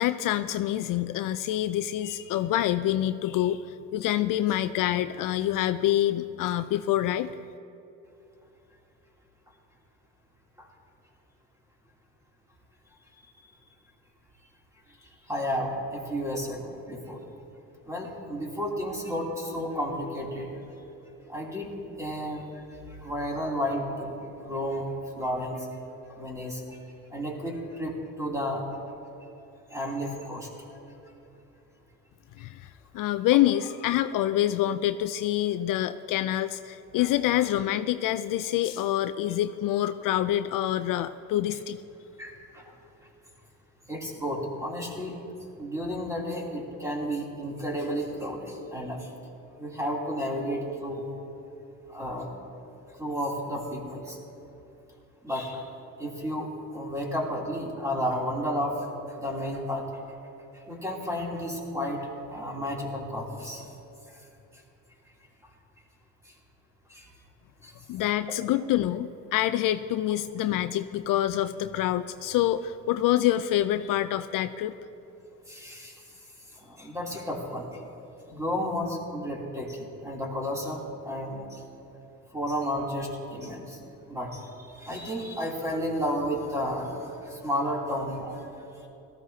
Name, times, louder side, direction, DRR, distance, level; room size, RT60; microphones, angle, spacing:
voice 1, 0.0-7.3 32.4-41.8 67.9-74.7, left 13 dB, 65° left, 11 dB, 0.5 m, -26 dB
voice 2, 15.0-17.2 17.8-20.5 21.3-21.7 22.0-24.2 24.4-24.8 25.1-25.7 26.1-26.8 27.1-28.6 29.7-30.5 42.2-42.8 43.9-45.2 45.6-49.1 49.6-51.0 51.9-52.3 52.9-54.2 55.2-55.6 56.0-59.9 60.5-63.7 64.1-64.2 66.2-66.3 66.9-67.1 67.6-67.7 75.5-76.1 76.5-77.8 78.3-81.6 82.3-83.8 84.1-88.5, equal, 10° right, -3 dB, 3.0 m, -32 dB
18.0 x 14.5 x 2.8 m, 2.9 s
supercardioid pair, 80°, 34 cm